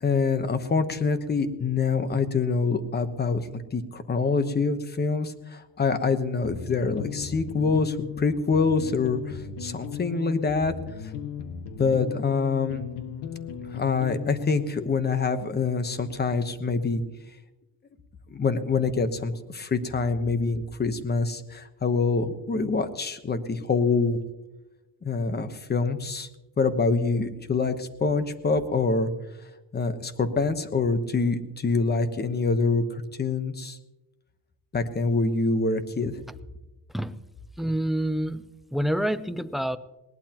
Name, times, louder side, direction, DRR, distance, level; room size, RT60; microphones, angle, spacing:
voice 1, 0.0-10.7 11.0-11.1 11.8-12.9 13.7-17.0 18.3-24.2 25.0-26.3 26.6-29.1 29.7-33.8 34.7-36.2, left 4 dB, 25° left, 10 dB, 1.1 m, -25 dB
sound 1, 6.4-14.9, left 7 dB, 85° left, 1.8 m, -37 dB
voice 2, 37.6-38.5 38.7-39.8, right 1 dB, ahead, 14 dB, 0.4 m, -27 dB
20.5 x 18.5 x 3.0 m, 1.0 s
cardioid pair, 150°, 40 cm